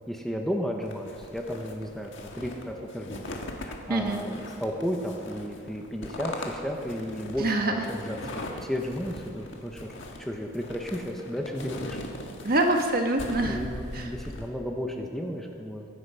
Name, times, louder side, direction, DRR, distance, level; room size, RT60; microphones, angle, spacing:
voice 1, 0.1-3.2 3.6-9.9 10.2-12.0 13.4-15.9, equal, ahead, 1 dB, 1.0 m, -33 dB
sound 1, 0.9-14.5, left 1 dB, 60° left, 1.7 m, -40 dB
voice 2, 3.9-4.2 7.4-7.8 12.4-13.6 13.9-14.1, right 2 dB, 45° right, 3 dB, 1.5 m, -25 dB
22.5 x 9.6 x 5.6 m, 2.2 s
head